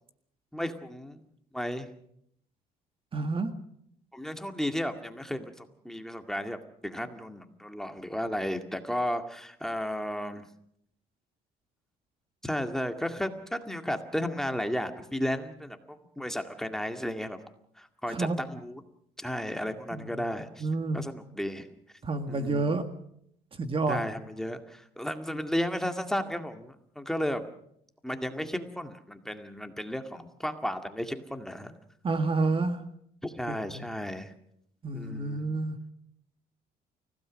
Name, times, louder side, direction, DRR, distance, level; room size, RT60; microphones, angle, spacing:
voice 1, 0.5-1.2 1.5-1.9 4.1-10.5 12.4-17.4 17.8-18.8 19.2-20.7 20.9-21.7 22.3-22.7 23.9-27.5 28.0-31.7 33.2-34.3 34.9-35.5, equal, 5° left, 6 dB, 2.1 m, -34 dB
voice 2, 3.1-3.5 18.1-18.4 19.9-20.2 20.6-21.0 22.0-22.8 23.6-24.0 32.0-32.8 33.6-33.8 34.8-35.8, right 3 dB, 30° right, 8 dB, 1.8 m, -29 dB
29.5 x 16.5 x 6.4 m, 0.72 s
cardioid pair, 110°, 17 cm